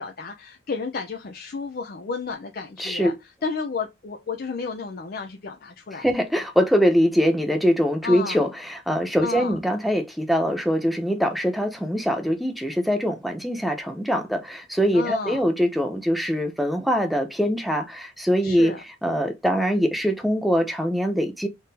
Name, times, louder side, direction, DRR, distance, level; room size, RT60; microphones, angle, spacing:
voice 1, 0.0-3.1 3.4-6.1 8.0-8.4 9.2-9.6 14.9-15.4 18.4-18.8, left 4 dB, 45° left, 0.5 m, -32 dB
voice 2, 2.8-3.1 6.0-18.7 19.0-21.5, equal, ahead, 0.5 m, -23 dB
3.7 x 2.6 x 4.0 m
head